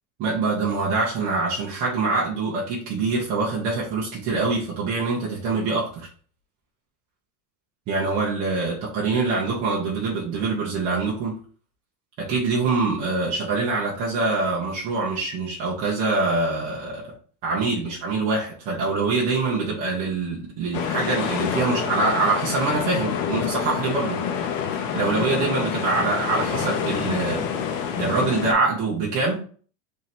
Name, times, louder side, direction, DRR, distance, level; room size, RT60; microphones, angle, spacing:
voice 1, 0.2-6.1 7.9-11.4 12.2-17.1 17.4-24.2 24.9-27.5 28.0-29.4, right 3 dB, 20° right, -5 dB, 0.3 m, -24 dB
sound 1, 20.7-28.5, left 7 dB, 55° left, 0.6 m, -27 dB
3.1 x 2.6 x 4.1 m, 0.43 s
supercardioid pair, 165°, 47 cm